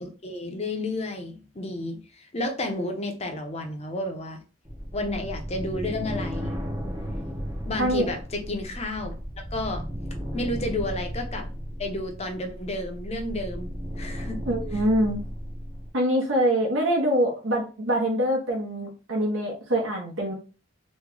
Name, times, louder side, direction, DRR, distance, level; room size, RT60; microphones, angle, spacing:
voice 1, 0.0-4.4 4.9-6.5 7.6-9.2 9.5-9.8 10.3-11.5 11.8-13.7 14.0-14.4, left 2 dB, 30° left, 4 dB, 0.7 m, -31 dB
sound 1, 4.6-15.9, equal, 15° right, 0.6 m, -35 dB
voice 2, 14.5-15.2 15.9-20.3, equal, 75° right, -1 dB, 0.9 m, -24 dB
3.1 x 2.2 x 3.7 m, 0.34 s
head